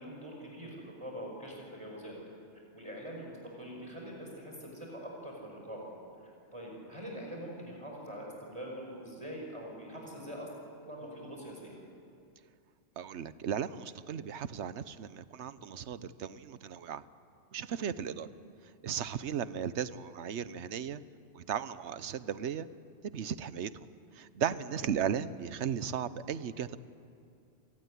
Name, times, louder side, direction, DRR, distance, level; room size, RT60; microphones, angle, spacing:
voice 1, 0.0-2.2 2.7-5.9 6.2-10.5 10.8-11.8 18.0-18.2 24.7-24.9, equal, 25° right, -1 dB, 5.3 m, -44 dB
voice 2, 13.0-17.0 17.5-18.3 18.8-21.0 21.3-22.7 23.0-23.9 24.1-26.8, right 8 dB, 75° right, 14 dB, 1.1 m, -36 dB
28.5 x 18.5 x 9.9 m, 2.5 s
omnidirectional pair, 1.2 m